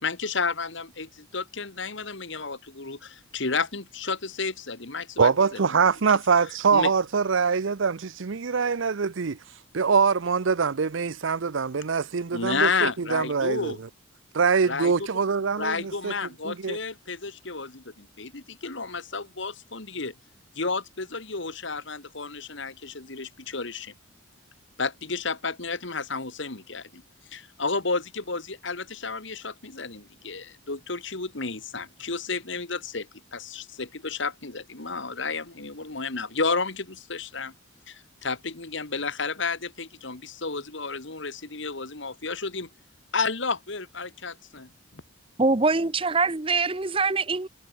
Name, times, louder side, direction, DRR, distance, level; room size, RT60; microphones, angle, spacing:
voice 1, 0.0-5.3 6.7-6.9 12.3-13.8 14.6-14.9 15.6-20.1 20.6-23.9 24.8-27.0 27.3-37.5 37.9-42.7 43.1-45.0, left 4 dB, 65° left, 2.1 m, -31 dB
voice 2, 5.2-9.4 9.7-13.8 14.3-16.1 16.4-16.8, right 5 dB, 70° right, 0.6 m, -24 dB
voice 3, 45.4-47.5, right 3 dB, 25° right, 0.8 m, -23 dB
head